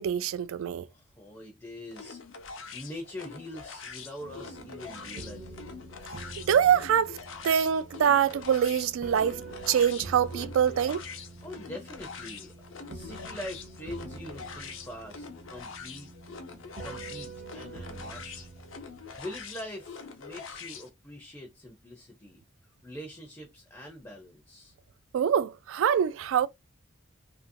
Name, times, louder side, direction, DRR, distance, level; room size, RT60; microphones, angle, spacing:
voice 1, 0.0-0.9 6.4-7.2 7.4-9.4 9.7-11.0 25.1-26.5, right 8 dB, 90° right, 0.3 m, -24 dB
voice 2, 0.9-2.2 2.7-5.8 11.4-12.5 12.9-16.1 16.8-18.5 19.2-22.4 22.8-24.7, left 1 dB, 15° left, 0.4 m, -43 dB
sound 1, 1.9-20.9, left 5 dB, 80° left, 0.6 m, -44 dB
sound 2, 4.2-19.7, right 3 dB, 40° right, 0.6 m, -46 dB
2.8 x 2.6 x 2.5 m
head